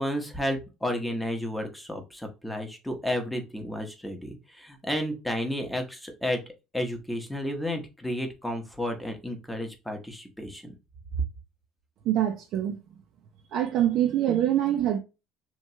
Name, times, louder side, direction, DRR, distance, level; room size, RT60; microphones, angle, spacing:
voice 1, 0.0-6.4 6.7-10.6, left 1 dB, 5° left, 0.7 m, -32 dB
voice 2, 12.1-12.8 13.5-15.0, right 11 dB, 60° right, 0.4 m, -24 dB
2.9 x 2.3 x 2.7 m
cardioid pair, 115°, 0 cm